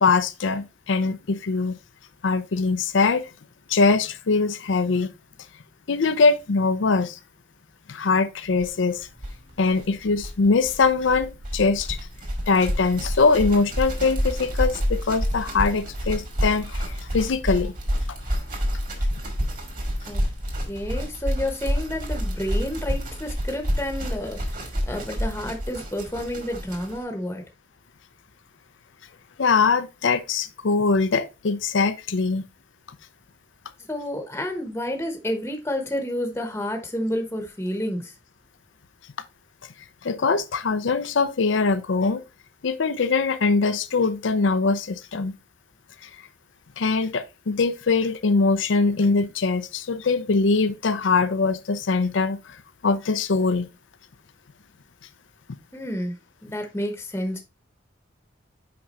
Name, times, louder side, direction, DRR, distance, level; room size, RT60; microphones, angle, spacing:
voice 1, 0.0-1.8 2.2-3.3 3.7-5.1 5.9-7.2 7.9-9.1 9.6-12.0 12.5-17.7 18.1-18.2 29.4-32.4 40.0-42.2 42.6-45.3 46.0-46.1 46.8-53.7, left 4 dB, 85° left, 0.5 m, -22 dB
sound 1, 8.6-8.7 8.9-9.0 9.2-27.0, equal, 45° right, 2.2 m, -28 dB
voice 2, 20.7-27.4 33.9-38.1 55.7-56.1 56.4-57.4, left 1 dB, 10° left, 0.9 m, -30 dB
6.0 x 4.9 x 4.1 m
head